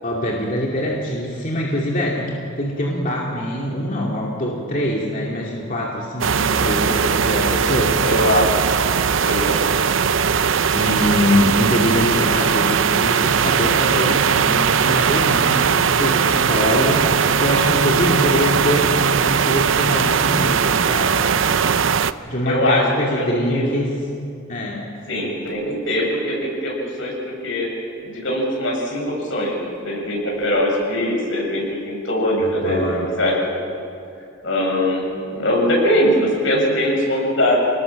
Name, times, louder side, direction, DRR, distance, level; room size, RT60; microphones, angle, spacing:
voice 1, 0.0-8.2 10.7-21.4 22.2-24.0 24.5-24.9 32.4-33.1, left 1 dB, 45° left, -3 dB, 2.4 m, -23 dB
sound 1, 6.2-22.1, right 6 dB, 85° right, 0.6 m, -19 dB
voice 2, 8.0-8.5 9.2-9.6 22.4-23.6 25.1-27.7 28.0-33.3 34.4-37.6, left 1 dB, 80° left, -2 dB, 7.6 m, -21 dB
27.0 x 19.0 x 7.5 m, 2.5 s
head